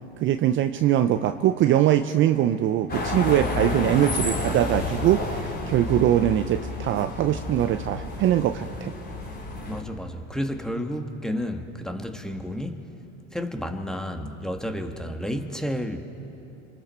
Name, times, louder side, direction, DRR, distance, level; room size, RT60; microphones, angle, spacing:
voice 1, 0.2-8.9, right 12 dB, 35° right, 9 dB, 0.6 m, -22 dB
sound 1, 2.9-9.8, left 2 dB, 30° left, 4.0 m, -30 dB
voice 2, 9.7-12.8 13.3-16.0, equal, ahead, 5 dB, 1.5 m, -31 dB
25.5 x 24.5 x 4.4 m, 3.0 s
hypercardioid pair, 95°, 35 cm